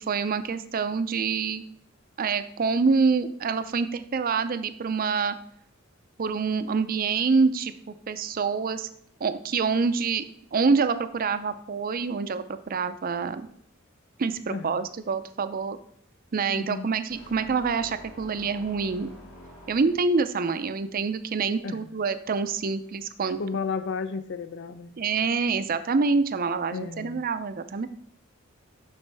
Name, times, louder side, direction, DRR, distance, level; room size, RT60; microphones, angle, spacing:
voice 1, 0.1-1.6 2.2-5.4 6.2-8.9 9.2-10.2 10.5-13.5 14.2-15.8 16.3-19.1 19.7-23.4 25.0-27.9, right 4 dB, 45° right, 0.5 m, -26 dB
voice 2, 14.5-14.9 16.5-16.9 21.6-21.9 23.4-25.0 26.7-27.2, left 5 dB, 60° left, 0.5 m, -33 dB
sound 1, 17.1-20.3, left 1 dB, 90° left, 2.3 m, -47 dB
7.2 x 6.1 x 3.4 m
head